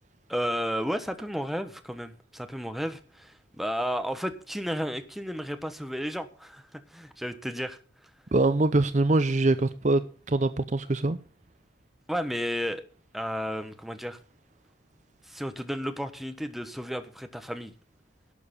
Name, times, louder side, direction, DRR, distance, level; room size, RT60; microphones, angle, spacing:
voice 1, 0.3-8.1 12.1-12.8 13.1-14.2 15.2-17.7, equal, ahead, 1.2 m, -33 dB
voice 2, 8.3-10.0 10.3-11.2, right 2 dB, 40° right, 0.6 m, -23 dB
12.0 x 6.9 x 8.6 m
head